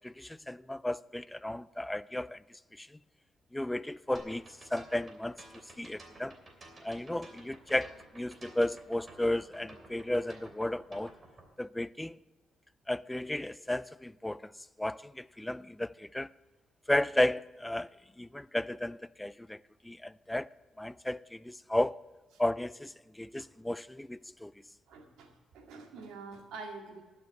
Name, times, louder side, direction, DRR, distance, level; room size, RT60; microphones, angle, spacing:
voice 1, 0.0-2.4 2.7-3.0 3.5-4.4 4.7-5.4 5.8-6.3 6.8-11.1 11.6-12.2 12.9-14.5 14.8-16.3 16.9-17.9 18.2-20.5 20.8-22.0 22.4-24.5, left 1 dB, 10° left, 0.3 m, -33 dB
sound 1, 4.1-11.5, right 2 dB, 35° right, 2.8 m, -53 dB
voice 2, 24.9-27.0, right 4 dB, 85° right, 2.0 m, -46 dB
11.5 x 6.4 x 8.2 m
cardioid pair, 90°, 0 cm